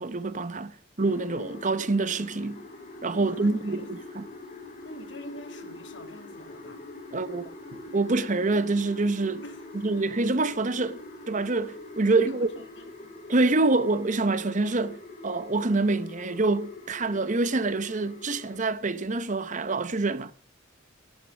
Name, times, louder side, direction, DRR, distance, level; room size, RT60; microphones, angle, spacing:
voice 1, 0.0-2.6 3.0-4.3 7.1-7.5 7.9-9.4 9.8-11.0 11.3-12.5 13.3-20.3, right 3 dB, 40° right, 0.9 m, -26 dB
sound 1, 1.0-18.6, left 2 dB, 40° left, 3.7 m, -44 dB
voice 2, 3.2-3.9 4.8-6.9 9.4-9.7 12.1-13.2, left 1 dB, 70° left, 2.4 m, -45 dB
13.0 x 11.5 x 6.4 m
head